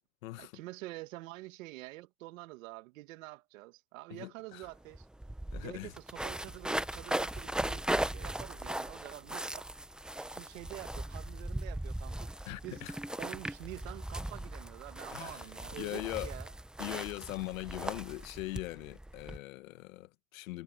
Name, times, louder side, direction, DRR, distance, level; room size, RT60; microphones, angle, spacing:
voice 1, 0.4-5.1 5.5-9.7 10.2-12.8 13.2-16.5, right 20 dB, 80° right, 1.9 m, -47 dB
voice 2, 4.1-4.7 5.5-5.9 12.5-12.9 15.1-15.5 15.7-16.3 16.8-20.6, left 18 dB, 90° left, 1.3 m, -41 dB
sound 1, 4.6-4.7 4.9-19.4, right 1 dB, ahead, 0.5 m, -38 dB
supercardioid pair, 125°, 39 cm